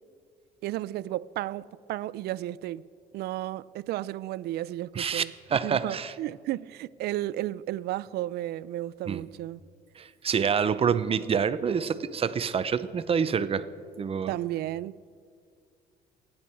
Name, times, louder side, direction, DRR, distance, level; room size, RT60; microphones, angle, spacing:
voice 1, 0.6-2.8 3.1-5.3 5.6-9.6 14.3-15.1, right 15 dB, 75° right, 0.5 m, -33 dB
voice 2, 5.5-6.1 9.1-9.2 10.0-13.7 14.0-14.3, right 6 dB, 35° right, 0.8 m, -27 dB
28.5 x 10.5 x 4.6 m
cardioid pair, 110°, 17 cm